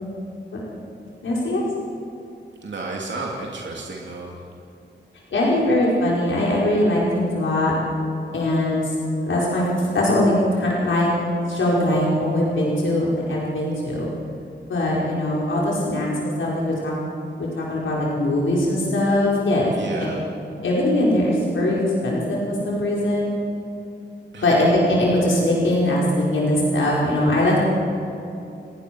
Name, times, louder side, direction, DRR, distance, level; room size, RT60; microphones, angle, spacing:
voice 1, 1.2-1.6 5.3-7.8 8.3-9.0 9.2-11.1 11.5-14.1 14.7-16.9 17.4-19.7 20.0-20.1 20.6-23.3 24.4-27.6, left 1 dB, 90° left, -4 dB, 5.2 m, -21 dB
voice 2, 2.6-4.4 19.7-20.2 24.3-24.5, right 3 dB, 70° right, -2 dB, 3.0 m, -32 dB
30.0 x 19.5 x 6.2 m, 2.8 s
wide cardioid pair, 175°, 19 cm